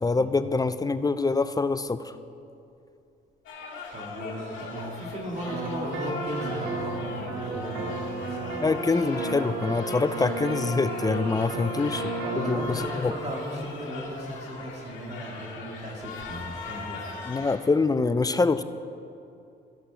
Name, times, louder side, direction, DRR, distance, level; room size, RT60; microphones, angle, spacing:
voice 1, 0.0-2.1 8.6-12.0 12.5-13.1 17.3-18.6, left 3 dB, 20° left, 12 dB, 0.4 m, -25 dB
sound 1, 3.5-17.6, left 4 dB, 70° left, 2.5 m, -40 dB
voice 2, 3.9-8.6 11.5-11.7 12.2-17.1, equal, 35° right, -2 dB, 2.2 m, -36 dB
sound 2, 5.5-12.8, right 3 dB, 85° right, 1.6 m, -33 dB
14.5 x 6.1 x 5.8 m, 2.6 s
cardioid pair, 90°, 20 cm